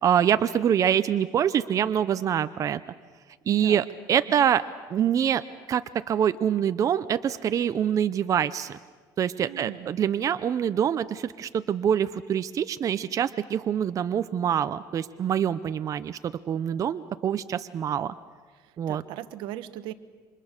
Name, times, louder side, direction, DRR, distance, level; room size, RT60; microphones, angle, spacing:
voice 1, 0.0-2.8 3.5-4.6 4.9-5.4 5.7-8.8 9.2-18.1 18.8-19.0, right 9 dB, 45° right, 12 dB, 0.7 m, -25 dB
voice 2, 9.4-10.0 18.6-19.9, right 13 dB, 80° right, 13 dB, 1.1 m, -38 dB
29.0 x 25.5 x 6.7 m, 1.4 s
cardioid pair, 110°, 8 cm